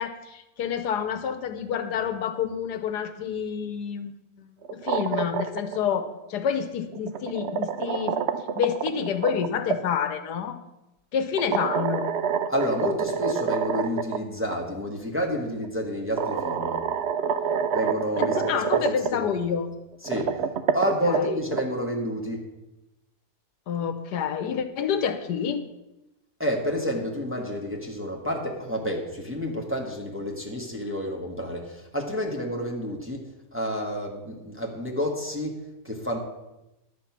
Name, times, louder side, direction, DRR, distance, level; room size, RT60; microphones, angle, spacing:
voice 1, 0.0-4.1 4.4-8.2 8.5-10.6 11.1-12.1 18.2-19.7 21.0-21.3 23.7-25.6, left 7 dB, 80° left, 9 dB, 1.4 m, -28 dB
sound 1, 4.6-5.8 6.9-9.8 11.4-14.2 14.5-14.6 15.6-15.7 16.2-19.1 19.9-21.6, right 7 dB, 60° right, 0.7 m, -27 dB
voice 2, 12.5-16.8 17.7-18.8 19.1-19.3 20.0-20.4 20.7-22.4 26.4-36.2, equal, 10° right, -1 dB, 1.6 m, -29 dB
11.0 x 8.1 x 5.9 m, 0.96 s
omnidirectional pair, 1.8 m